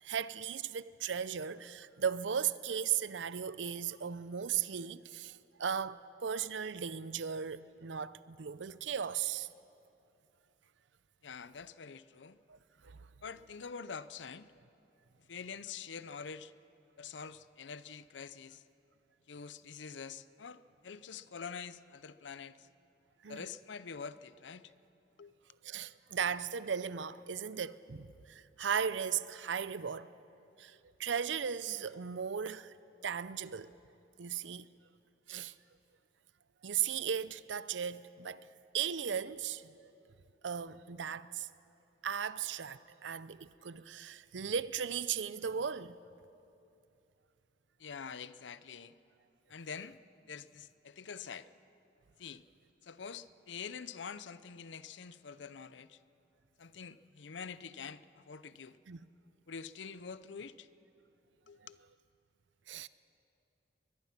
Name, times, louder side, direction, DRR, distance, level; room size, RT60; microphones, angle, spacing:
voice 1, 0.0-9.5 12.5-12.6 12.8-13.0 23.2-23.4 25.6-30.1 30.6-32.7 33.0-33.7 34.2-34.7 35.3-35.5 36.6-38.5 38.7-39.6 40.4-41.5 42.0-46.0 58.9-59.0 62.7-62.9, right 7 dB, 80° right, 0.6 m, -36 dB
voice 2, 11.2-12.4 13.2-14.5 15.3-16.5 17.0-18.6 19.3-22.7 23.3-24.7 25.2-25.3 47.8-48.9 49.5-50.0 50.3-51.5 52.2-52.4 52.8-56.0 56.6-58.8 59.5-60.7 61.5-61.8, left 6 dB, 75° left, 0.6 m, -46 dB
22.5 x 21.0 x 5.9 m
head